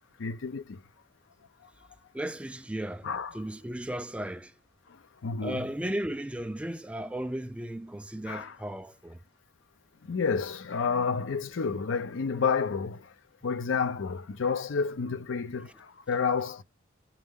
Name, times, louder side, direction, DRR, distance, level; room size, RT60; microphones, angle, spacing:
voice 1, 0.2-0.8 3.0-3.4 5.2-5.7 8.3-8.6 10.0-13.1 13.4-16.6, left 5 dB, 85° left, 0.6 m, -30 dB
voice 2, 2.1-3.1 3.3-4.5 5.4-9.2, right 1 dB, 5° right, 0.3 m, -35 dB
6.4 x 4.2 x 3.5 m
head